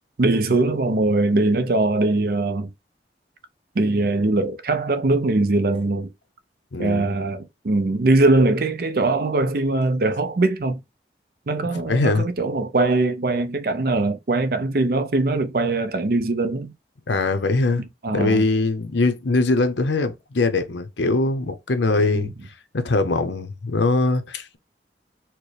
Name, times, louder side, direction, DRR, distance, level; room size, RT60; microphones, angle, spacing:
voice 1, 0.2-2.7 3.8-6.1 6.8-10.8 11.5-16.7 17.8-18.4 22.0-22.3, right 2 dB, 55° right, 0.5 m, -21 dB
voice 2, 6.7-7.1 11.6-12.3 17.1-17.8 18.1-22.3 22.7-24.6, left 3 dB, 80° left, 0.7 m, -22 dB
4.4 x 2.1 x 3.1 m
head